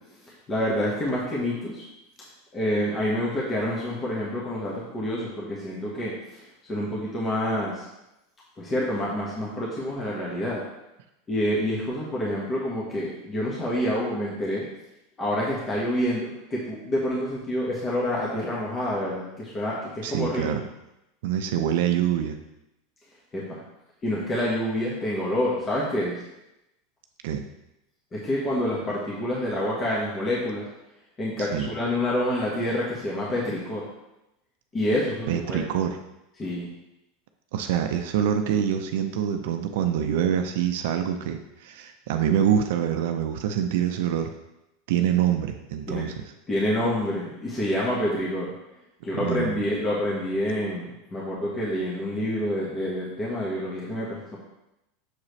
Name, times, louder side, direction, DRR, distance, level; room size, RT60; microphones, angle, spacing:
voice 1, 0.2-1.8 2.5-7.9 8.6-10.6 11.3-14.6 15.2-20.5 23.3-23.6 24.0-26.2 28.1-30.6 31.2-33.8 34.7-35.6 36.4-36.7 45.9-46.0 46.5-48.5 49.0-54.4, left 1 dB, 25° left, -5 dB, 1.5 m, -27 dB
voice 2, 20.0-20.6 21.2-22.4 27.2-27.5 31.4-31.7 35.3-36.0 37.5-44.3 44.9-46.2 49.1-49.6, right 9 dB, 70° right, 6 dB, 0.5 m, -25 dB
6.4 x 4.7 x 3.2 m, 0.91 s
hypercardioid pair, 100°, 0 cm